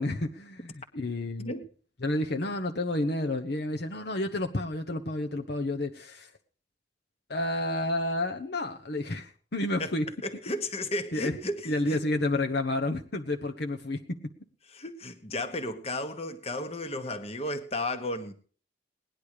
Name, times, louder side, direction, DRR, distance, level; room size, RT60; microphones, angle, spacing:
voice 1, 0.0-1.5 2.0-6.3 7.3-10.1 11.1-11.3 11.7-14.3, left 1 dB, 60° left, 1.0 m, -30 dB
voice 2, 10.2-12.0 14.7-18.3, left 1 dB, 35° left, 1.4 m, -34 dB
18.0 x 10.5 x 4.9 m
head